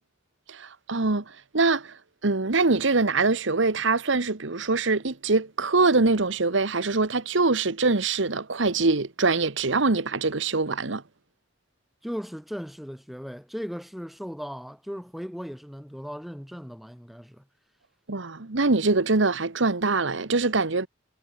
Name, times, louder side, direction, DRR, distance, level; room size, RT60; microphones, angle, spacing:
voice 1, 0.5-1.2 1.5-2.0 2.2-11.0 18.1-20.9, right 3 dB, 70° right, 1.3 m, -23 dB
voice 2, 12.0-17.4, equal, ahead, 2.3 m, -37 dB
head